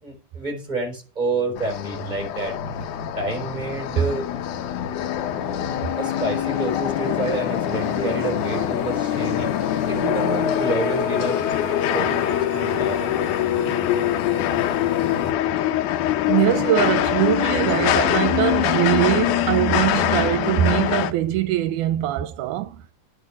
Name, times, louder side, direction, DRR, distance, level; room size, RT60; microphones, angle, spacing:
voice 1, 0.0-2.5 3.2-4.3 6.0-9.5 9.9-11.4 11.9-13.3, right 3 dB, 15° right, 4.0 m, -28 dB
sound 1, 1.3-15.3, left 7 dB, 70° left, 3.1 m, -29 dB
Victoria Line, 1.6-21.1, left 12 dB, 90° left, 2.3 m, -24 dB
voice 2, 16.3-22.8, right 12 dB, 80° right, 2.1 m, -22 dB
10.5 x 6.4 x 8.4 m
omnidirectional pair, 3.5 m